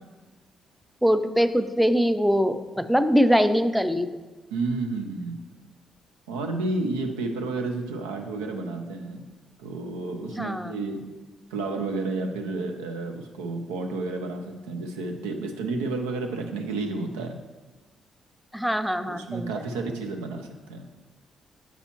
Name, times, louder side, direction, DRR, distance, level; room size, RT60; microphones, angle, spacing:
voice 1, 1.0-4.2 10.3-10.7 18.5-19.6, equal, ahead, 10 dB, 0.4 m, -23 dB
voice 2, 4.5-5.4 6.3-9.2 9.6-11.0 11.5-17.4 19.1-20.9, right 3 dB, 85° right, 4 dB, 0.6 m, -31 dB
7.2 x 5.5 x 3.0 m, 1.3 s
hypercardioid pair, 50°, 0 cm